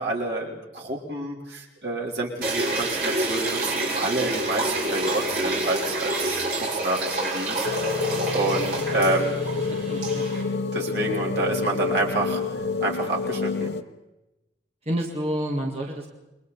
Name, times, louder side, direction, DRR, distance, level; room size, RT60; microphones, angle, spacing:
voice 1, 0.0-7.7 8.3-9.4 10.7-12.4 12.8-13.7, right 2 dB, 70° right, -1 dB, 3.7 m, -28 dB
sound 1, 2.4-10.4, right 2 dB, 55° right, 6.5 m, -28 dB
sound 2, 7.6-13.8, left 4 dB, 70° left, 1.0 m, -28 dB
voice 2, 9.7-10.2 14.9-16.1, equal, 35° right, 0 dB, 2.0 m, -30 dB
29.0 x 22.0 x 4.2 m, 1.0 s
head